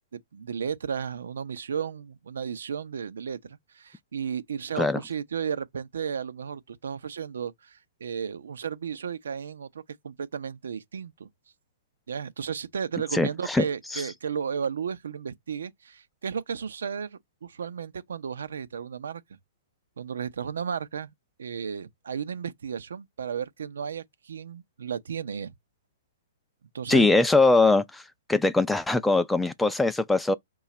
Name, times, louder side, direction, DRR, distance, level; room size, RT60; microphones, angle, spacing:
voice 1, 0.1-11.3 12.1-19.2 20.0-21.1 21.4-25.5 26.7-27.1, right 7 dB, 80° right, 0.6 m, -34 dB
voice 2, 13.1-13.7 13.9-14.0 26.9-28.0 28.3-30.3, left 3 dB, 5° left, 0.3 m, -21 dB
4.8 x 2.3 x 4.1 m
hypercardioid pair, 145°, 0 cm